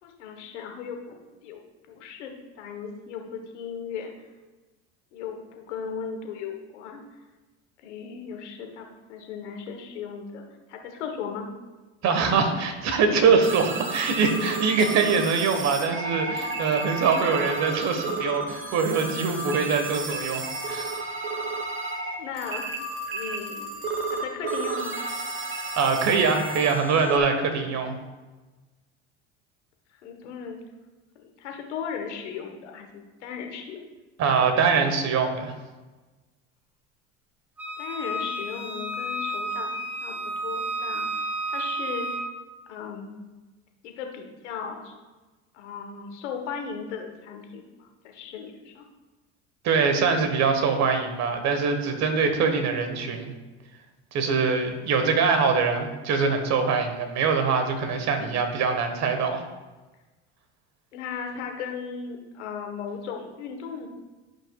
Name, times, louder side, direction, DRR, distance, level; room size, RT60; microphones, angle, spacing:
voice 1, 0.0-1.2 1.4-4.1 5.1-7.0 7.8-10.4 10.7-11.5 16.8-17.0 22.2-22.7 23.1-23.7 24.1-25.0 30.0-30.6 31.1-33.8 37.8-41.1 41.5-42.2 42.7-43.2 43.8-44.9 45.5-48.9 58.1-58.3 60.9-63.9, left 6 dB, 90° left, 3 dB, 1.2 m, -37 dB
voice 2, 12.0-20.9 25.8-27.9 34.2-35.5 49.6-53.3 54.1-59.4, right 5 dB, 50° right, 6 dB, 1.4 m, -23 dB
sound 1, 13.4-27.2, right 3 dB, 35° right, 1.2 m, -32 dB
Wind instrument woodwind instrument, 37.6-42.3, right 1 dB, 5° right, 1.2 m, -31 dB
12.0 x 5.3 x 2.4 m, 1.2 s
supercardioid pair, 85°, 34 cm